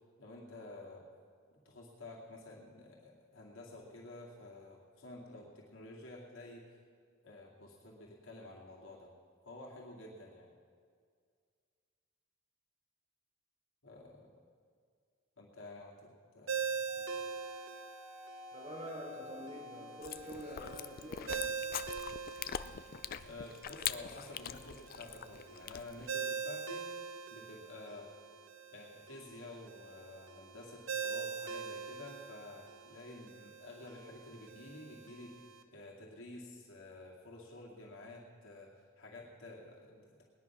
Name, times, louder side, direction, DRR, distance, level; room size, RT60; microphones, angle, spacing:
voice 1, 0.2-1.0 1.6-6.7 7.2-9.1 9.4-10.5 13.8-14.3 15.4-17.1 23.2-26.9 27.3-28.1 28.7-35.3 35.7-40.2, left 2 dB, 85° left, -3 dB, 2.3 m, -51 dB
Ringtone, 16.5-35.6, right 6 dB, 70° right, 0.9 m, -43 dB
Wind instrument woodwind instrument, 16.9-21.0, left 3 dB, 5° right, 1.8 m, -53 dB
voice 2, 18.5-21.7, equal, 30° right, -2 dB, 3.5 m, -46 dB
Chewing mastication, 20.0-26.1, left 9 dB, 45° left, 0.4 m, -43 dB
19.5 x 10.0 x 5.9 m, 2.1 s
head